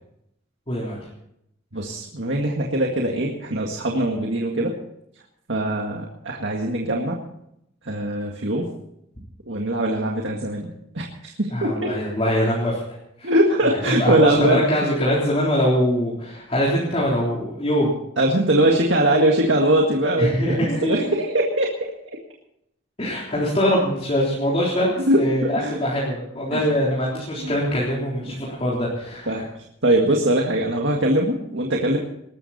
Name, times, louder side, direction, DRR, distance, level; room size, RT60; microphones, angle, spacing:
voice 1, 0.7-1.0 11.5-12.8 13.2-13.3 13.9-18.0 20.2-21.1 23.0-29.4, equal, 30° left, -6 dB, 3.7 m, -23 dB
voice 2, 1.7-4.8 5.5-7.2 7.8-8.7 9.5-10.7 10.9-11.9 13.2-14.6 18.2-21.9 25.1-25.8 26.5-26.6 27.4-27.5 28.3-28.4 29.3-29.5 29.8-32.0, right 1 dB, 70° right, 0 dB, 1.9 m, -21 dB
20.0 x 13.5 x 4.3 m, 0.78 s
head